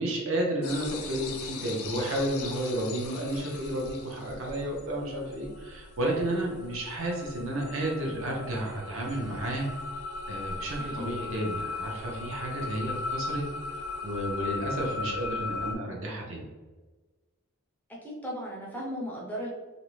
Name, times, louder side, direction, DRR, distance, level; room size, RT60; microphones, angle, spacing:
voice 1, 0.0-9.7 10.3-13.4 14.0-16.4, right 1 dB, 60° right, -1 dB, 0.6 m, -32 dB
sound 1, 0.6-15.8, left 3 dB, 85° left, 0.4 m, -38 dB
voice 2, 10.8-11.1 18.0-19.5, equal, 5° left, -3 dB, 0.4 m, -36 dB
2.5 x 2.0 x 3.0 m, 1.3 s
head